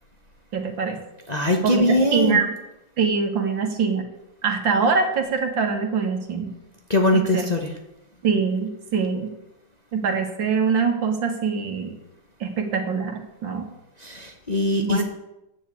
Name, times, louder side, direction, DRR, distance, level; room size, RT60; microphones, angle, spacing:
voice 1, 0.5-1.0 1.6-2.5 3.0-4.0 4.4-6.5 7.1-7.5 8.2-9.3 9.9-11.9 12.4-13.6 14.8-15.0, right 5 dB, 80° right, 4 dB, 2.4 m, -23 dB
voice 2, 1.3-2.4 6.9-7.7 14.0-15.0, left 1 dB, 30° left, 2 dB, 0.9 m, -21 dB
10.0 x 7.3 x 8.3 m, 0.90 s
omnidirectional pair, 2.0 m